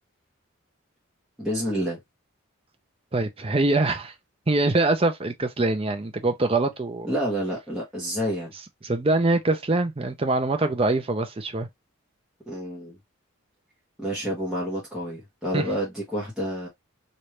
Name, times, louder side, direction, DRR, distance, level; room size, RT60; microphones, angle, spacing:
voice 1, 1.4-2.0 7.0-8.5 12.5-13.0 14.0-16.7, equal, ahead, 1.1 m, -29 dB
voice 2, 3.1-4.1 4.5-7.1 8.8-11.7 15.5-15.6, right 2 dB, 25° right, 0.5 m, -23 dB
3.2 x 2.6 x 2.9 m
head